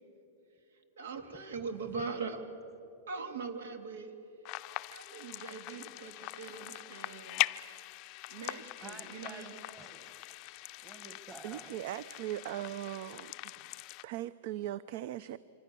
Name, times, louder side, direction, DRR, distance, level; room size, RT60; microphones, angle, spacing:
voice 1, 1.0-2.4 3.1-4.1 4.9-7.4 8.3-9.5, right 4 dB, 85° right, 2.5 m, -41 dB
voice 2, 1.5-2.1 8.8-10.3 10.8-12.0, right 4 dB, 15° right, 1.5 m, -52 dB
sound 1, 4.4-14.0, left 21 dB, 35° left, 0.5 m, -41 dB
voice 3, 11.4-13.3 14.0-15.4, right 13 dB, 55° right, 0.5 m, -39 dB
26.5 x 25.5 x 6.9 m
supercardioid pair, 155°, 0 cm